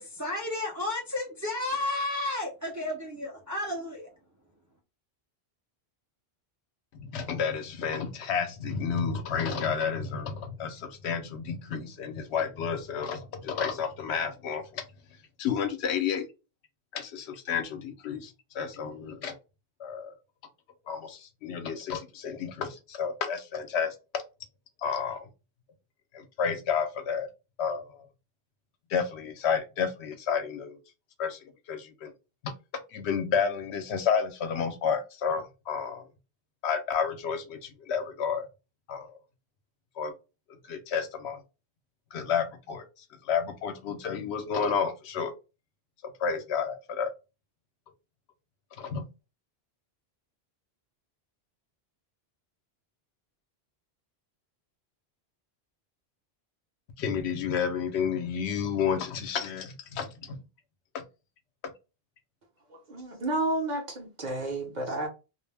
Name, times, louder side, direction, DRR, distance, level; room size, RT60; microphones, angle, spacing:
voice 1, 0.0-4.1, left 2 dB, 25° right, 0.4 m, -32 dB
voice 2, 6.9-14.8 15.4-16.3 16.9-19.4 19.8-20.1 20.9-24.2 24.8-25.3 26.1-27.3 27.6-28.1 28.9-30.8 31.2-32.1 32.4-32.5 32.9-36.0 36.6-38.5 38.9-39.2 40.0-40.1 40.7-41.4 42.1-42.8 43.2-45.3 46.0-47.1 48.8-49.1 57.0-60.4 60.9-61.0, left 6 dB, 85° left, 0.9 m, -31 dB
voice 3, 62.9-65.1, right 2 dB, 45° right, 0.8 m, -31 dB
2.4 x 2.1 x 3.2 m
omnidirectional pair, 1.1 m